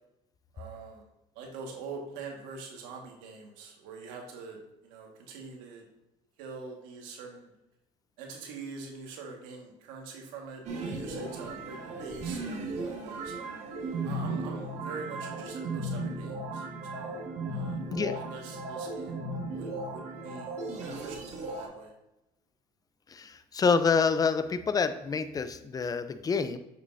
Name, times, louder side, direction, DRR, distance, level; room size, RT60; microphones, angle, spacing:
voice 1, 0.5-1.0 1.3-5.8 6.4-7.5 8.2-13.5 14.0-16.7 16.9-17.2 17.5-17.8 18.1-19.2 19.6-21.9, right 4 dB, 85° right, 1 dB, 1.7 m, -44 dB
sound 1, 10.6-21.7, right 2 dB, 55° right, 1.8 m, -36 dB
voice 2, 23.1-26.6, left 5 dB, 25° left, 11 dB, 0.6 m, -27 dB
8.0 x 6.5 x 2.7 m, 0.90 s
supercardioid pair, 90°, 14 cm